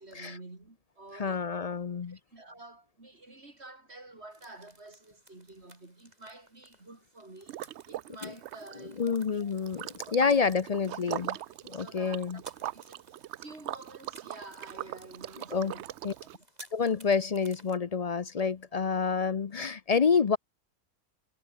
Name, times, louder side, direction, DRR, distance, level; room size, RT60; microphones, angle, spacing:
voice 1, 0.0-1.5 2.1-9.5 10.0-10.6 11.1-11.4 11.7-12.4 12.7-16.5, right 2 dB, 45° right, 4.3 m, -50 dB
voice 2, 1.2-2.2 8.2-8.3 9.0-11.4 11.6-12.4 15.5-15.7 16.0-16.1 16.7-20.4, left 5 dB, 50° left, 0.4 m, -28 dB
sound 1, 4.3-17.8, right 1 dB, 25° right, 5.8 m, -57 dB
Liquid, 7.5-8.1 8.4-16.4, right 13 dB, 65° right, 0.7 m, -41 dB
omnidirectional pair, 1.5 m